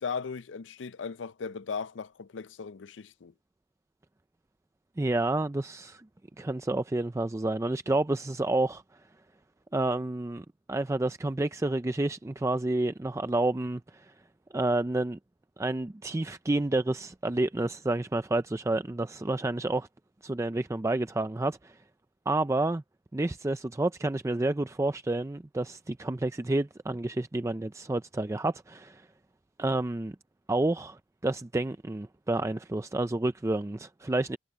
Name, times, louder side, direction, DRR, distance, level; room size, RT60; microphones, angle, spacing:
voice 1, 0.0-3.3, left 5 dB, 90° left, 0.5 m, -37 dB
voice 2, 5.0-6.0 6.4-8.8 9.7-14.1 14.5-15.2 15.6-19.9 20.2-21.8 22.3-22.8 23.1-29.1 29.6-30.2 30.5-34.4, right 2 dB, 15° right, 0.4 m, -29 dB
head